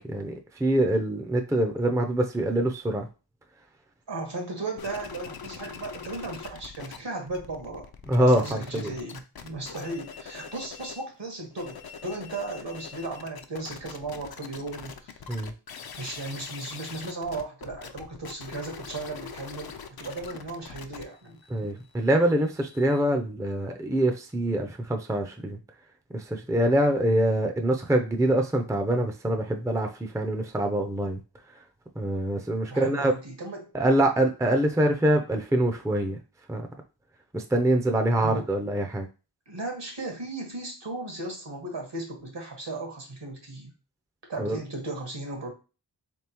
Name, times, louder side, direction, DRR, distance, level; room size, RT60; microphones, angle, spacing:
voice 1, 0.0-3.1 8.1-8.9 15.3-15.5 21.5-25.6 26.1-31.2 32.0-33.1 33.7-36.2 36.5-36.7 37.3-39.1 44.4-44.6, right 1 dB, 5° right, 5 dB, 0.5 m, -25 dB
voice 2, 4.1-15.1 16.0-21.4 32.7-33.7 38.2-38.5 39.5-43.7 44.3-45.5, right 2 dB, 70° right, 1 dB, 1.5 m, -36 dB
sound 1, 4.8-7.0 7.2-11.1 11.4-23.0, left 6 dB, 55° left, 0.5 m, -43 dB
3.7 x 3.5 x 2.9 m, 0.32 s
wide cardioid pair, 45°, 44 cm